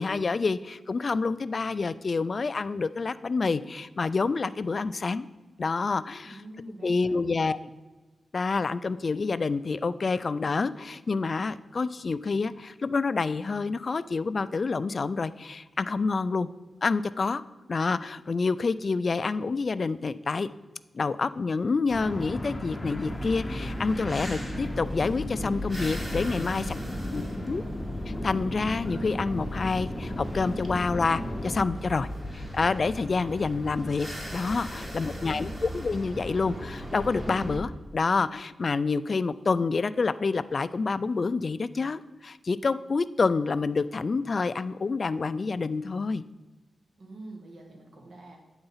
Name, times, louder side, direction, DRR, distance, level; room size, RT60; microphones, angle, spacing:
voice 1, 0.0-5.3 5.6-6.4 6.8-7.6 8.3-16.5 16.8-17.4 17.7-20.5 20.9-26.8 27.1-27.6 28.1-32.1 32.3-34.1 34.3-46.2, left 4 dB, 50° left, 15 dB, 0.3 m, -28 dB
voice 2, 6.2-7.2 26.4-27.7 34.7-35.6 47.0-48.4, right 1 dB, 75° right, 0 dB, 1.5 m, -46 dB
sound 1, 21.9-31.6, left 1 dB, 15° left, 0.7 m, -35 dB
sound 2, 23.0-37.6, equal, 20° right, 1.7 m, -38 dB
9.0 x 3.9 x 5.6 m, 1.2 s
cardioid pair, 75°, 0 cm